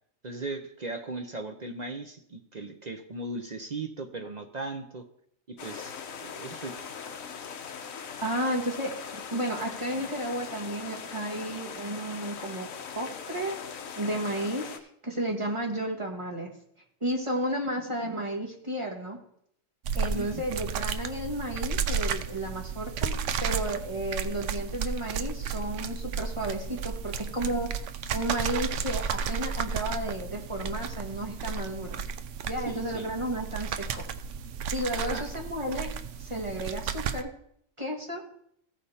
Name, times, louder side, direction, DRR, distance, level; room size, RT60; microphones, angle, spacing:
voice 1, 0.2-5.0 5.5-6.9 20.0-20.4 32.6-33.1 35.0-35.3, right 2 dB, 45° right, 6 dB, 0.6 m, -38 dB
sound 1, 5.6-14.8, left 6 dB, 75° left, 1.2 m, -40 dB
voice 2, 8.2-12.7 12.9-13.6 14.0-16.5 17.0-19.2 19.9-23.1 23.4-27.7 28.1-32.0 32.5-34.0 34.7-35.9 36.2-37.3 37.8-38.2, right 1 dB, 20° right, -1 dB, 1.6 m, -32 dB
sound 2, 19.8-37.2, right 6 dB, 70° right, 0.9 m, -33 dB
15.0 x 5.1 x 4.2 m, 0.69 s
omnidirectional pair, 1.4 m